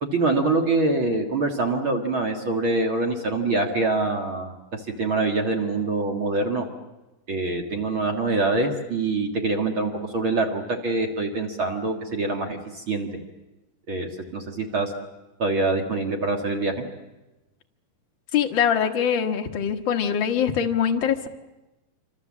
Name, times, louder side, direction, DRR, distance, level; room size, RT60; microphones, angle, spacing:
voice 1, 0.0-6.7 7.3-13.1 13.9-14.9 15.4-16.8, right 3 dB, 45° right, 2 dB, 2.1 m, -25 dB
voice 2, 18.3-21.3, left 8 dB, 50° left, 4 dB, 1.5 m, -23 dB
26.5 x 25.5 x 7.4 m, 1.0 s
omnidirectional pair, 4.2 m